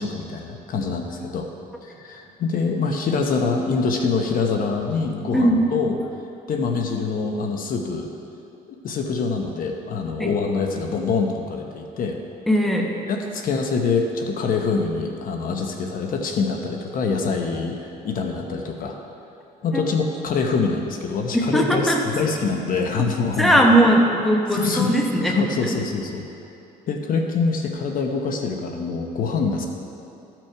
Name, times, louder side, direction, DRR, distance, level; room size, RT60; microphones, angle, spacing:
voice 1, 0.0-1.5 1.8-6.0 6.5-8.1 8.8-12.2 13.1-19.0 19.6-23.6 24.5-24.9 25.2-26.2 26.9-29.7, left 4 dB, 55° left, 3 dB, 1.0 m, -25 dB
voice 2, 5.3-5.7 10.2-10.3 12.5-12.9 19.7-19.8 21.5-22.0 23.4-25.7, right 1 dB, ahead, 0 dB, 1.1 m, -19 dB
14.5 x 6.1 x 4.6 m, 2.7 s
cardioid pair, 110°, 17 cm